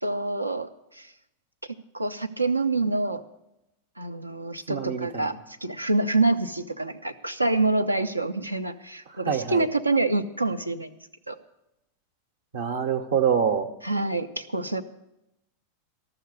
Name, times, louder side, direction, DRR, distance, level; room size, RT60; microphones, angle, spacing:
voice 1, 0.0-1.1 1.9-3.2 4.0-10.9 11.3-11.4 13.8-14.8, right 2 dB, 85° right, 11 dB, 0.6 m, -26 dB
voice 2, 4.7-5.4 9.1-9.7 12.5-13.7, right 7 dB, 60° right, 5 dB, 0.8 m, -26 dB
13.5 x 6.7 x 8.1 m, 0.88 s
figure-of-eight pair, 90°, 0 cm